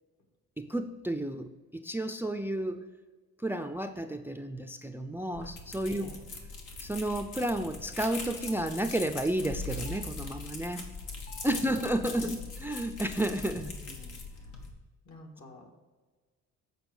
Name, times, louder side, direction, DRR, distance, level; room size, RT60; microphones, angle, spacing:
voice 1, 0.6-2.8 3.4-6.1 6.8-10.8 11.4-13.6, right 1 dB, 5° right, 8 dB, 0.4 m, -32 dB
sound 1, 5.3-14.7, left 3 dB, 85° left, 1.5 m, -41 dB
sound 2, 8.5-8.8 9.9-10.2 11.3-11.7 12.7-13.1, left 3 dB, 35° left, 1.2 m, -53 dB
voice 2, 12.0-12.4 13.5-14.5 15.0-15.7, left 1 dB, 65° left, 3 dB, 2.0 m, -49 dB
8.1 x 4.6 x 4.9 m, 1.3 s
cardioid pair, 90°, 30 cm